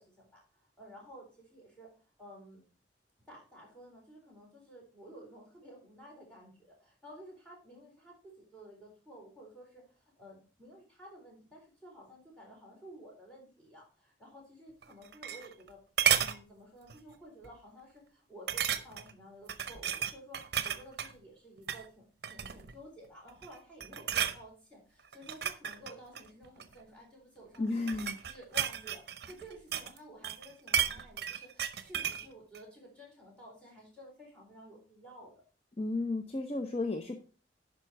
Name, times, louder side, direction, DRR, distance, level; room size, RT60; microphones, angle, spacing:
voice 1, 0.0-1.9 2.2-2.6 3.3-9.8 10.2-15.8 16.2-27.8 28.2-35.3, equal, 5° left, -3 dB, 3.9 m, -53 dB
sound 1, 14.8-15.7 16.0-16.4 16.9-17.1 17.4-17.5 18.5-19.1 19.5-21.1 21.6-21.8 22.2-22.8 23.3-23.5 23.8-24.4 25.1-26.7 27.5-30.0 30.2-32.3 32.5-32.6, right 9 dB, 65° right, 0.7 m, -33 dB
voice 2, 27.6-28.2 35.8-37.2, left 2 dB, 35° left, 5 dB, 0.7 m, -33 dB
11.0 x 5.2 x 4.5 m, 0.38 s
head